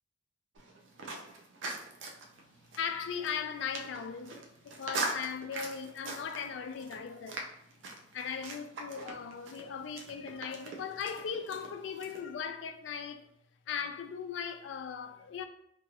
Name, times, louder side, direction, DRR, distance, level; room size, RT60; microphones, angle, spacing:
sound 1, 0.6-12.2, right 3 dB, 75° right, 0.5 m, -42 dB
voice 1, 2.8-7.5 8.1-13.3 13.7-15.4, left 7 dB, 70° left, 0.3 m, -38 dB
2.9 x 2.8 x 2.4 m
head